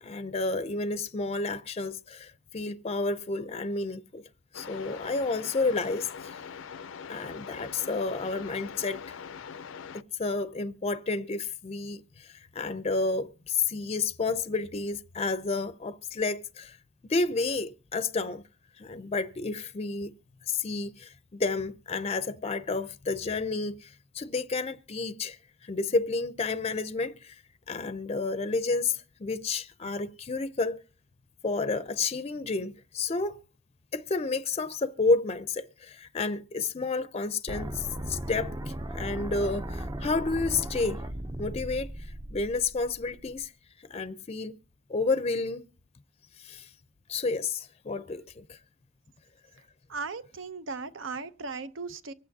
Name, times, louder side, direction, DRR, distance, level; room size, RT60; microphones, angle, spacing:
voice 1, 0.0-4.2 4.5-6.4 7.1-9.2 9.9-16.8 17.1-18.4 18.8-20.1 20.5-27.4 27.7-30.8 31.4-33.4 33.9-38.5 38.9-41.0 41.4-41.9 42.3-43.5 43.9-44.5 44.9-45.6 46.4-46.7 47.1-48.6, left 3 dB, 30° left, 0.5 m, -30 dB
sound 1, 4.5-10.0, left 6 dB, 85° left, 0.5 m, -42 dB
sound 2, 37.5-43.5, right 1 dB, 20° right, 0.5 m, -37 dB
voice 2, 49.9-52.1, right 4 dB, 80° right, 0.7 m, -37 dB
24.5 x 8.8 x 2.7 m
head